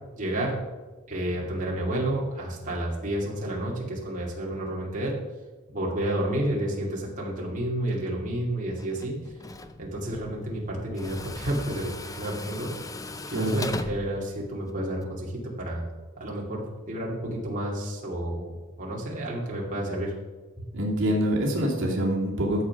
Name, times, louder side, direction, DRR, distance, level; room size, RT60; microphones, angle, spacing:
voice 1, 0.2-0.5 1.1-5.1 5.7-9.2 9.8-12.7 13.4-15.9 16.2-20.1, right 1 dB, 35° right, -4 dB, 2.5 m, -30 dB
Tools, 8.8-15.0, left 2 dB, 15° left, 0.6 m, -39 dB
voice 2, 13.3-13.6 20.7-22.6, equal, 60° right, -2 dB, 2.6 m, -25 dB
13.0 x 7.7 x 5.9 m, 1.3 s
head